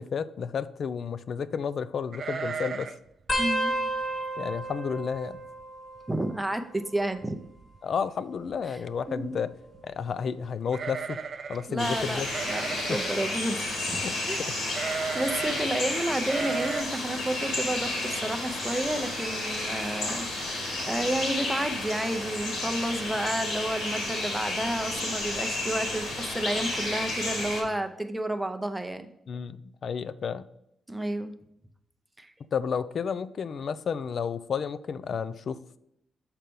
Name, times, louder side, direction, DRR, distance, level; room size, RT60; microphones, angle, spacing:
voice 1, 0.0-2.9 4.4-5.4 7.8-9.5 9.8-11.2 11.5-12.3 12.9-13.0 14.0-14.1 14.4-14.5 29.3-30.4 32.5-35.8, left 6 dB, 55° left, 15 dB, 0.4 m, -31 dB
sound 1, 2.1-3.1 3.3-3.4 3.9-4.2 4.7-4.8 5.1-5.6 6.0-6.1 7.2-7.3 7.6-8.0 10.7-11.7 12.3-13.2 14.7-15.7 16.2-16.8, right 5 dB, 50° right, 0.4 m, -34 dB
sound 2, 3.3-6.5 6.8-7.4 8.3-9.8 10.4-10.8 12.0-12.4 13.9-14.0, right 1 dB, 25° left, 0.9 m, -34 dB
voice 2, 3.4-3.7 6.1-7.4 8.7-8.8 9.1-9.4 11.7-14.5 15.1-20.6 20.9-29.1 30.9-31.4 32.2-32.3, right 1 dB, 10° right, 7 dB, 0.7 m, -31 dB
sound 3, 11.8-27.6, left 2 dB, 75° left, 3.0 m, -32 dB
6.5 x 4.4 x 5.3 m, 0.78 s
cardioid pair, 100°, 0 cm